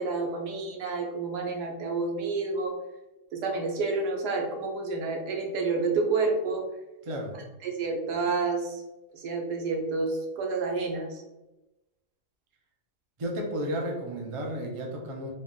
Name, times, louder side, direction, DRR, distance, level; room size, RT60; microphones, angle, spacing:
voice 1, 0.0-2.7 3.3-6.6 7.6-8.8 9.1-11.2, right 3 dB, 70° right, 1 dB, 1.3 m, -29 dB
voice 2, 13.2-15.3, equal, 55° right, -1 dB, 0.3 m, -32 dB
4.2 x 2.4 x 3.8 m, 1.0 s
omnidirectional pair, 1.8 m